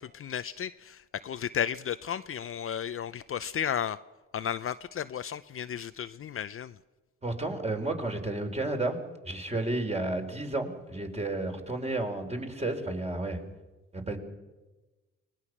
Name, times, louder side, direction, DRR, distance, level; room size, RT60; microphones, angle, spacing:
voice 1, 0.0-4.0 4.3-6.7, left 9 dB, 45° left, 13 dB, 0.6 m, -34 dB
voice 2, 7.2-13.4 13.9-14.2, right 2 dB, 20° right, 4 dB, 3.8 m, -32 dB
25.0 x 20.0 x 6.1 m, 1.2 s
supercardioid pair, 70°, 30 cm